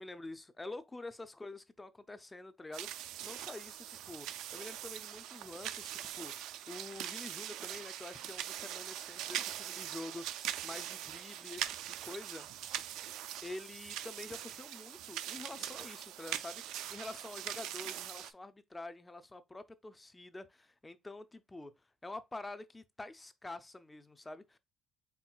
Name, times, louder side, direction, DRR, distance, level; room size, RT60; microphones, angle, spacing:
voice 1, 0.0-4.3 4.5-12.5 13.4-21.7 22.0-24.6, left 2 dB, 10° left, 0.3 m, -47 dB
sound 1, 2.7-18.3, right 11 dB, 80° right, 0.4 m, -42 dB
4.3 x 3.8 x 2.3 m
cardioid pair, 165°, 0 cm